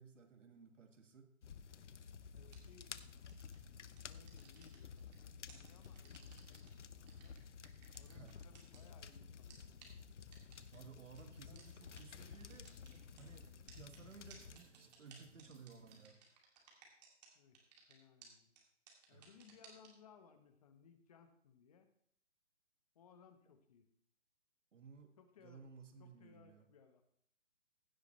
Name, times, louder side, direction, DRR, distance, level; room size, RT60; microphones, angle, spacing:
voice 1, 0.0-1.3 8.1-8.4 10.7-12.8 13.1-16.2 19.1-19.3 24.7-26.7, right 5 dB, 80° right, 6 dB, 1.8 m, -58 dB
sound 1, 1.4-14.6, left 6 dB, 75° left, 0.9 m, -53 dB
voice 2, 2.3-3.0 3.8-7.4 7.9-9.7 11.1-11.2 11.4-11.7 17.3-17.6 17.9-18.5 19.1-21.9 22.9-23.9 25.2-25.6 26.0-27.0, left 6 dB, 30° left, 9 dB, 1.1 m, -64 dB
sound 2, 2.5-2.8 3.3-3.6 4.0-5.1 5.5-6.7 7.1-9.1 9.5-9.6 9.8-9.9 10.3-10.8 11.2-11.3 11.6-11.7 12.0-12.1 12.3-13.2 13.7-17.3 17.5-17.9 18.2-18.3 18.6-18.7 18.9-19.9, right 7 dB, 35° right, 2.5 m, -60 dB
sound 3, 10.8-16.1, right 4 dB, 50° right, 2.1 m, -68 dB
15.5 x 8.3 x 3.2 m, 0.65 s
hypercardioid pair, 160°, 36 cm